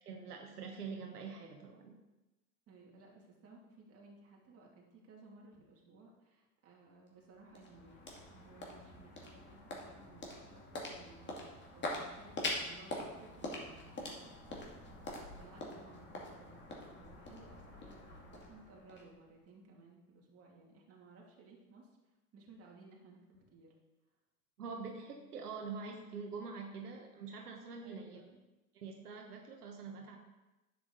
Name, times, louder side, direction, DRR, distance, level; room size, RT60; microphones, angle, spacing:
voice 1, 0.0-1.9 24.6-28.2 28.7-30.2, right 5 dB, 80° right, 2 dB, 1.2 m, -45 dB
voice 2, 2.7-14.3 14.7-21.9 22.3-23.7 27.8-28.4, right 3 dB, 30° right, -2 dB, 2.7 m, -59 dB
sound 1, 7.1-19.5, left 2 dB, 25° left, 2.3 m, -44 dB
9.5 x 7.5 x 3.9 m, 1.0 s
hypercardioid pair, 90°, 45 cm